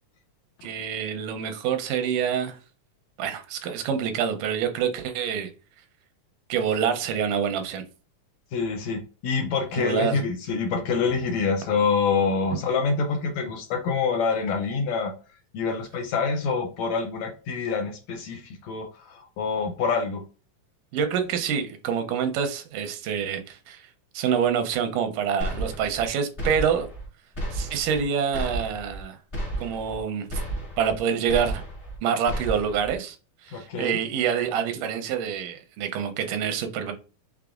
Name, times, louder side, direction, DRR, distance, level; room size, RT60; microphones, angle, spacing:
voice 1, 0.6-2.6 3.2-5.5 6.5-7.8 9.8-10.2 20.9-23.8 24.1-26.9 27.5-29.2 29.6-30.3 30.8-31.6 32.0-33.2 33.4-36.9, right 7 dB, 90° right, 2.2 m, -26 dB
voice 2, 8.5-15.1 15.5-20.2 33.5-34.0, left 5 dB, 75° left, 1.7 m, -26 dB
sound 1, 25.4-26.1 26.4-27.1 27.4-28.0 28.3-29.0 29.3-30.0 30.3-31.0 31.3-32.0 32.3-33.0, right 1 dB, 30° left, 1.0 m, -32 dB
5.9 x 3.5 x 2.4 m
omnidirectional pair, 3.7 m